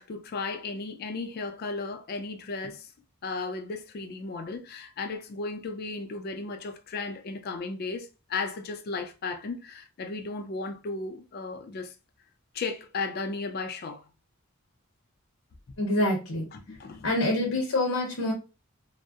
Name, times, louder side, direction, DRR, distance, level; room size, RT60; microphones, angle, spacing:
voice 1, 0.0-2.9 3.2-11.9 12.5-14.0 16.5-17.1, left 3 dB, 45° left, 0.4 m, -35 dB
voice 2, 15.8-16.4 17.0-18.3, left 1 dB, 70° left, 0.8 m, -26 dB
2.7 x 2.0 x 2.3 m
head